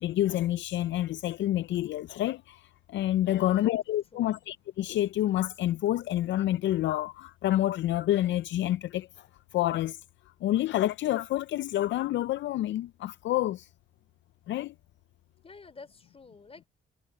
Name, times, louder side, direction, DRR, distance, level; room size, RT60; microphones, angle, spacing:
voice 1, 0.0-9.3 9.5-10.0 10.4-13.7 14.5-14.7, left 13 dB, 70° left, 0.4 m, -28 dB
voice 2, 3.3-3.8 4.1-4.4 15.4-16.7, left 4 dB, 30° left, 4.4 m, -50 dB
cardioid pair, 90°, 20 cm